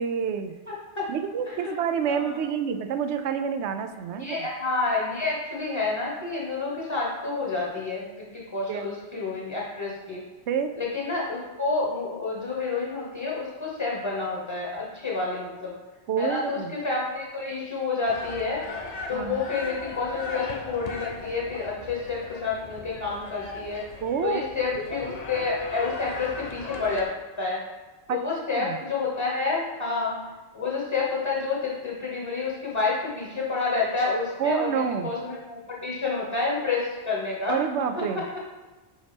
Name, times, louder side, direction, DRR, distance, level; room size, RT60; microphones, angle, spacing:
voice 1, 0.0-0.5 1.1-4.5 8.7-8.9 10.5-10.7 16.1-16.7 19.1-19.5 24.0-24.4 28.1-28.2 28.5-28.8 34.4-35.1 37.5-38.2, right 7 dB, 85° right, 9 dB, 0.9 m, -28 dB
voice 2, 0.7-1.1 1.5-1.7 2.0-2.3 4.1-10.2 10.8-15.7 16.2-18.6 19.1-23.8 24.2-27.0 27.4-27.6 28.1-37.6, left 4 dB, 25° left, -4 dB, 1.1 m, -29 dB
sound 1, 18.1-27.0, left 3 dB, 45° left, 0.6 m, -38 dB
5.1 x 4.0 x 5.1 m, 1.2 s
omnidirectional pair, 1.1 m